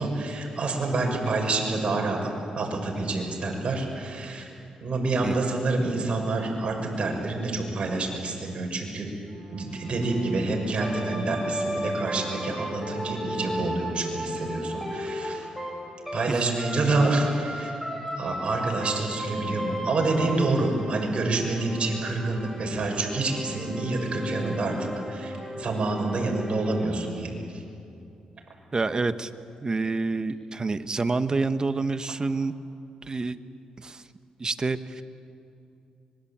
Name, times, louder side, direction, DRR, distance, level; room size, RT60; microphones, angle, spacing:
voice 1, 0.0-4.5 4.8-9.1 9.5-15.5 16.1-17.7 18.2-27.6, right 2 dB, 45° right, 0 dB, 6.5 m, -27 dB
Bowed string instrument, 9.2-16.8, right 3 dB, 80° right, 3.3 m, -47 dB
sound 1, 10.8-16.3 16.6-26.8, equal, ahead, 7.2 m, -35 dB
voice 2, 28.7-29.3 29.6-32.5 33.1-33.4 33.8-34.0 34.4-35.0, right 3 dB, 30° right, 11 dB, 1.2 m, -27 dB
25.0 x 22.0 x 8.8 m, 2.6 s
cardioid pair, 75°, 2 cm